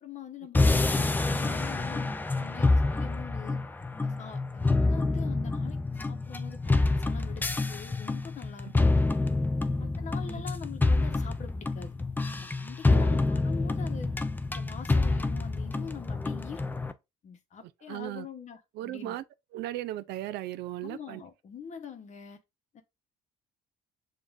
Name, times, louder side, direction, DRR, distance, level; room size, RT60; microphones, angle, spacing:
voice 1, 0.0-3.6 4.0-5.8 6.0-6.6 6.9-9.0 9.8-12.0 12.3-14.1 14.5-16.6 17.2-19.2 20.8-22.4 22.7-22.8, left 7 dB, 45° left, 0.9 m, -44 dB
sound 1, 0.5-16.9, left 3 dB, 10° left, 0.4 m, -27 dB
voice 2, 17.9-18.3 18.8-19.2 19.5-21.2, right 15 dB, 80° right, 0.4 m, -37 dB
7.0 x 2.4 x 2.4 m
cardioid pair, 110°, 17 cm